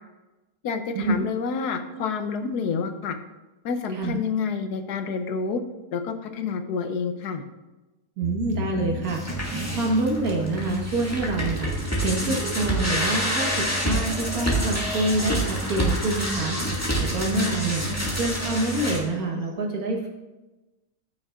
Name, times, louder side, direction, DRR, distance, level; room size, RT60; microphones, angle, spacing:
voice 1, 0.6-3.2 3.6-5.6 5.9-7.4 17.8-18.1, left 5 dB, 75° left, 7 dB, 1.3 m, -28 dB
sound 1, 8.2-10.1 10.5-19.5, equal, 20° right, 1.6 m, -38 dB
voice 2, 8.2-11.7 12.0-17.9 18.1-20.1, right 2 dB, 60° right, 0 dB, 1.8 m, -27 dB
sound 2, 9.0-19.0, right 1 dB, 10° left, 1.8 m, -27 dB
14.0 x 6.4 x 2.5 m, 1.1 s
omnidirectional pair, 1.7 m